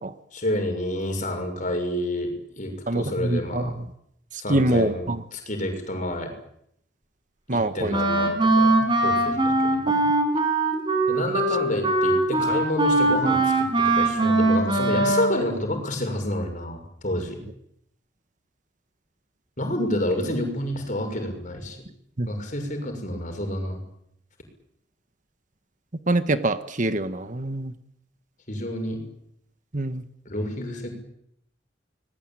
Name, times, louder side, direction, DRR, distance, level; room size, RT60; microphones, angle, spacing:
voice 1, 0.3-3.8 4.4-5.0 5.3-6.3 7.5-10.1 11.1-17.4 19.6-21.8 22.3-23.8 28.5-29.0 30.2-30.9, left 1 dB, 40° left, 5 dB, 6.5 m, -29 dB
voice 2, 2.9-3.9 4.5-5.2 7.5-8.0 9.9-10.0 22.2-22.3 26.1-27.7 29.7-30.0, right 1 dB, 40° right, 10 dB, 1.3 m, -25 dB
Wind instrument woodwind instrument, 7.9-15.4, right 2 dB, 25° right, 5.4 m, -21 dB
26.0 x 20.5 x 9.0 m, 0.73 s
head